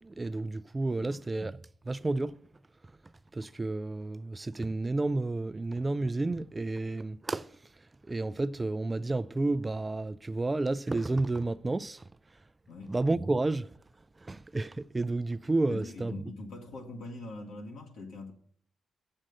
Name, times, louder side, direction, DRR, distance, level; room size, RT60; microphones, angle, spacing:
voice 1, 0.0-2.4 3.3-7.5 8.0-12.1 12.9-13.7 14.2-16.2, right 2 dB, 25° right, 0.4 m, -31 dB
voice 2, 15.7-18.3, left 2 dB, 70° left, 1.2 m, -43 dB
7.5 x 7.3 x 6.4 m
hypercardioid pair, 40°, 0 cm